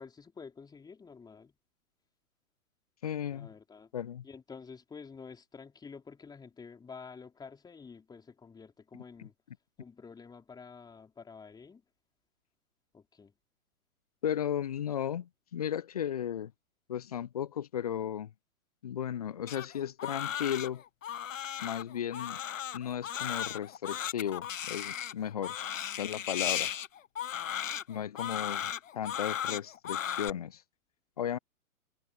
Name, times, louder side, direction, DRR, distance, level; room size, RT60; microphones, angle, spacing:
voice 1, 0.0-1.5 3.3-3.9 4.2-9.3 9.8-11.8 12.9-13.3, left 5 dB, 10° left, 4.2 m, -49 dB
voice 2, 3.0-3.5 3.9-4.3 9.2-9.3 14.2-16.5 16.9-18.3 18.8-20.8 21.6-22.4 22.7-25.5 25.9-26.7 27.9-30.6 31.2-31.4, left 9 dB, 30° left, 0.4 m, -35 dB
Crying sobbing, 19.5-30.3, left 9 dB, 60° left, 1.4 m, -36 dB
figure-of-eight pair, 120°, 44 cm